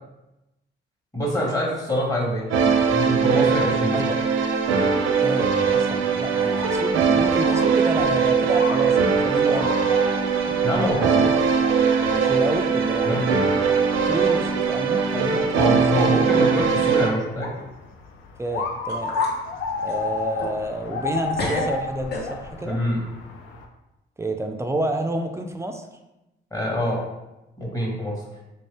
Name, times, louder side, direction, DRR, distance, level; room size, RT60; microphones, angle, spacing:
voice 1, 1.1-4.1 10.5-11.4 13.0-13.3 15.6-17.5 22.6-23.1 26.5-27.0 27.6-28.2, equal, 20° left, -3 dB, 1.2 m, -25 dB
sound 1, 2.5-17.1, right 6 dB, 85° right, 0.5 m, -21 dB
voice 2, 5.2-9.8 10.8-11.0 12.1-13.3 14.1-16.2 18.4-19.1 19.8-22.8 24.2-25.9, right 1 dB, 15° right, 5 dB, 0.4 m, -29 dB
sound 2, 6.3-23.6, left 4 dB, 85° left, 0.5 m, -34 dB
sound 3, 10.9-11.6 11.9-12.4 12.8-12.9 13.8-13.9 14.6-14.7 15.1-15.5 15.8-15.9 18.4-18.5 18.9-19.4 19.8-21.1 21.4-22.7, left 2 dB, 55° left, 0.9 m, -34 dB
3.6 x 2.6 x 3.3 m, 0.97 s
cardioid pair, 90°, 20 cm